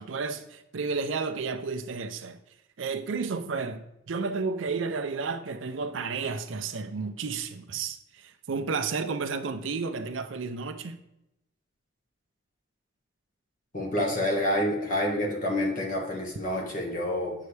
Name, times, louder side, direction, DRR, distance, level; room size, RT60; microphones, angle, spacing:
voice 1, 0.0-2.4 2.8-11.0, right 4 dB, 80° right, 0.5 m, -32 dB
voice 2, 13.7-17.3, left 1 dB, 45° left, 1.5 m, -28 dB
8.0 x 5.6 x 3.3 m
head